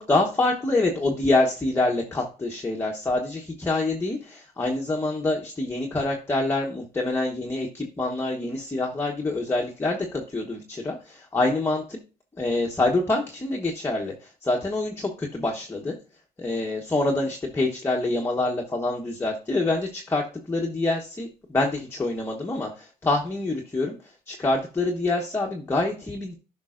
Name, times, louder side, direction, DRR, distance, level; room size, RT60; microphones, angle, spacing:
voice 1, 0.0-12.0 12.4-15.9 16.4-26.3, left 2 dB, 15° left, 0 dB, 1.1 m, -26 dB
11.0 x 5.5 x 2.5 m, 0.34 s
cardioid pair, 110°, 17 cm